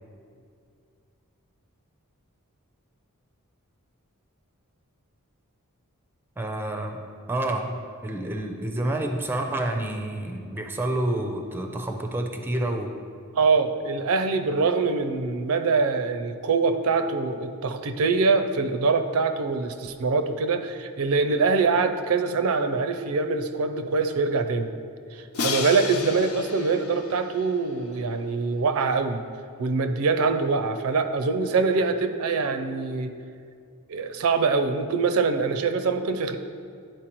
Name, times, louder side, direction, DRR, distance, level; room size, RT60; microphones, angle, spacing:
voice 1, 6.4-12.9, right 1 dB, 10° right, 4 dB, 0.4 m, -29 dB
voice 2, 13.3-24.7 25.1-29.2 29.6-33.1 33.9-36.4, right 4 dB, 70° right, 8 dB, 0.5 m, -24 dB
Crash cymbal, 25.3-28.3, left 5 dB, 80° left, 0.6 m, -33 dB
11.0 x 4.5 x 3.0 m, 2.3 s
head